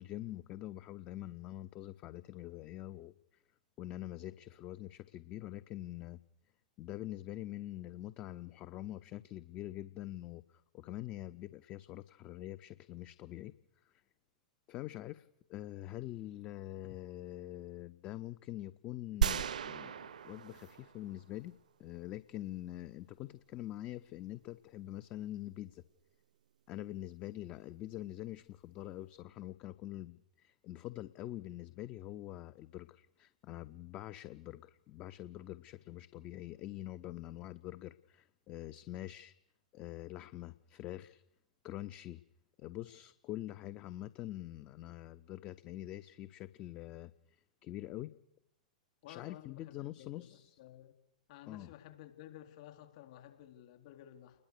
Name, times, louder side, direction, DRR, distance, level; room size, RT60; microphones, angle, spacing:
voice 1, 0.0-3.4 3.8-6.2 6.8-13.5 13.8-14.0 14.7-21.5 21.8-25.8 26.7-39.3 39.7-41.2 41.6-42.2 42.6-48.1 49.0-50.6 51.5-51.7, left 14 dB, 35° left, 14 dB, 0.9 m, -45 dB
sound 1, 19.2-21.5, right 9 dB, 75° right, 1.0 m, -35 dB
voice 2, 49.0-49.5 50.0-50.1 50.6-50.9 51.3-54.3, left 12 dB, 55° left, 7 dB, 4.0 m, -53 dB
29.5 x 21.0 x 6.7 m, 0.79 s
figure-of-eight pair, 100°, 4 cm